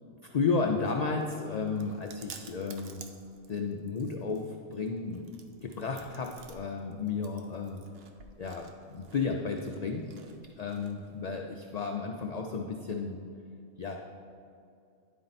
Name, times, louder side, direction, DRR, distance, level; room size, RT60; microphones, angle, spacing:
voice 1, 0.2-3.0 3.5-7.8 8.4-10.0 10.6-13.2 13.8-14.0, left 4 dB, 65° left, 2 dB, 0.4 m, -33 dB
Chewing mastication, 0.6-11.3, right 5 dB, 65° right, 0.8 m, -53 dB
10.0 x 4.3 x 4.0 m, 2.4 s
omnidirectional pair, 1.2 m